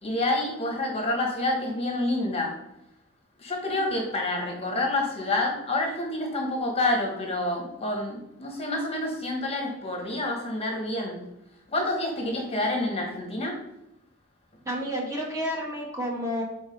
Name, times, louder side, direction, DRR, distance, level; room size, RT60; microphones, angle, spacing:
voice 1, 0.0-2.6 3.4-11.3 11.7-13.6, left 2 dB, 25° left, 0 dB, 1.2 m, -28 dB
voice 2, 14.6-16.4, equal, 15° right, -3 dB, 1.5 m, -30 dB
4.8 x 4.4 x 5.4 m, 0.84 s
head